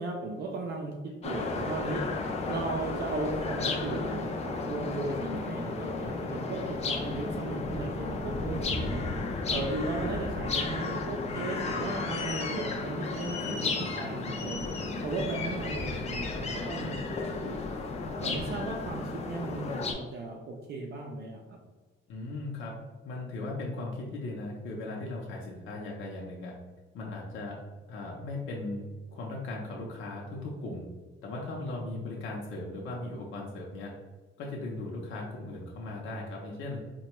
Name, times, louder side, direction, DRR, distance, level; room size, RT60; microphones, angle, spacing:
voice 1, 0.0-2.0 2.5-9.0 9.5-14.7 15.0-17.0 17.3-21.6, right 3 dB, 55° right, 1 dB, 0.5 m, -36 dB
sound 1, 1.2-19.9, left 3 dB, 35° left, 0.4 m, -33 dB
voice 2, 9.5-9.9 16.8-17.0 22.1-22.7 23.0-26.5 26.9-27.6 27.9-28.8 29.1-30.8 31.2-33.9 34.4-36.8, left 2 dB, 75° left, -2 dB, 0.7 m, -38 dB
4.2 x 2.2 x 2.9 m, 1.3 s
cardioid pair, 155°, 20 cm